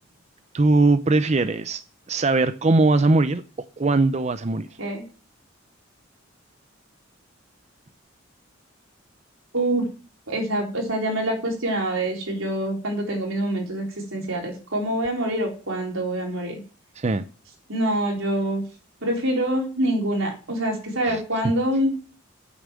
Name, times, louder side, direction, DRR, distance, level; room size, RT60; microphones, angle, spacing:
voice 1, 0.5-1.8 2.1-3.4 3.8-4.7 17.0-17.2 21.0-21.2, right 3 dB, 35° right, 0.5 m, -20 dB
voice 2, 9.5-9.9 10.3-13.9 14.1-16.6 17.7-18.6 19.0-21.9, right 1 dB, 90° right, 4.1 m, -25 dB
8.7 x 7.0 x 7.5 m
head